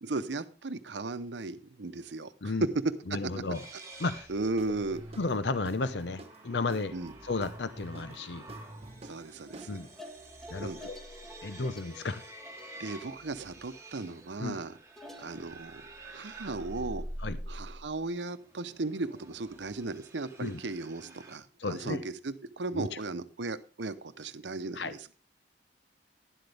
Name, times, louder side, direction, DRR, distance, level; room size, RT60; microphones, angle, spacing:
voice 1, 0.0-2.5 4.3-5.0 6.9-7.1 9.0-9.8 10.6-10.8 11.5-11.6 12.8-14.7 15.2-17.0 17.5-25.1, right 3 dB, 90° right, 12 dB, 0.8 m, -36 dB
voice 2, 3.1-3.6 4.0-4.3 5.2-6.9 7.2-8.4 9.7-9.9 10.5-11.0 11.4-12.2 14.4-14.5 17.2-17.4 20.4-20.6 21.6-22.0 22.7-22.9 24.7-24.9, left 3 dB, 75° left, 12 dB, 0.7 m, -33 dB
sound 1, 3.5-21.4, right 1 dB, 15° right, 1.7 m, -48 dB
Guitar / Drum, 4.5-10.1, right 1 dB, 35° right, 1.2 m, -48 dB
sound 2, 9.5-15.4, left 1 dB, ahead, 1.1 m, -50 dB
12.0 x 11.0 x 3.4 m, 0.36 s
head